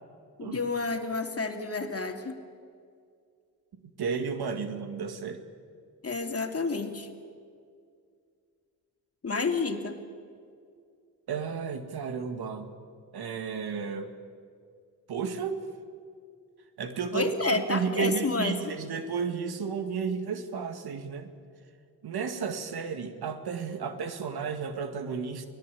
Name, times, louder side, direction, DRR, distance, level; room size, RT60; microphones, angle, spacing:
voice 1, 0.4-2.4 6.0-7.1 9.2-10.0 17.1-18.6, left 3 dB, 35° left, 6 dB, 2.7 m, -30 dB
voice 2, 4.0-5.4 11.3-12.7 13.1-14.1 15.1-15.6 16.8-21.3 22.0-25.5, right 6 dB, 70° right, 8 dB, 2.1 m, -32 dB
24.0 x 18.0 x 8.4 m, 2.2 s
supercardioid pair, 50°, 39 cm